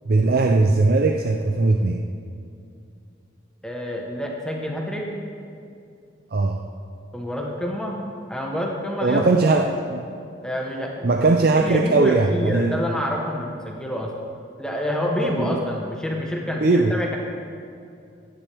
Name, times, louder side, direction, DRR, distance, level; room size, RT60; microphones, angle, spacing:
voice 1, 0.1-2.0 6.3-6.6 9.0-10.0 11.0-12.8 15.2-15.6 16.6-16.9, right 3 dB, 50° right, 4 dB, 0.5 m, -19 dB
voice 2, 3.6-5.1 7.1-8.0 8.3-9.8 10.4-11.1 11.3-14.1 14.6-17.2, equal, 5° left, -1 dB, 0.9 m, -27 dB
15.5 x 10.0 x 3.4 m, 2.5 s
head